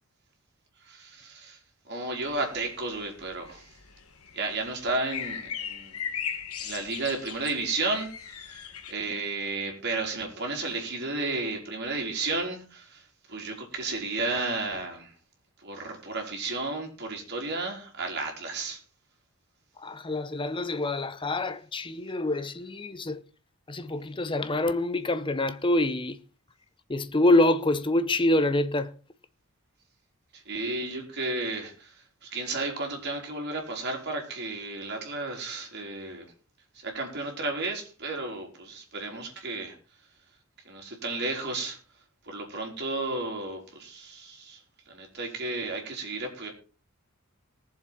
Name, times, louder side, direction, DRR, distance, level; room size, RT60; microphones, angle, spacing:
voice 1, 0.8-1.6 1.8-3.8 4.3-6.0 6.6-15.1 15.6-18.8 30.3-36.3 36.7-39.8 40.6-41.8 42.2-46.5, right 3 dB, 50° right, 4.0 m, -33 dB
sound 1, 2.3-8.9, left 8 dB, 85° left, 1.5 m, -39 dB
voice 2, 19.8-23.2 23.7-26.2 26.9-28.9, left 1 dB, 25° left, 0.7 m, -26 dB
19.5 x 7.5 x 4.5 m
head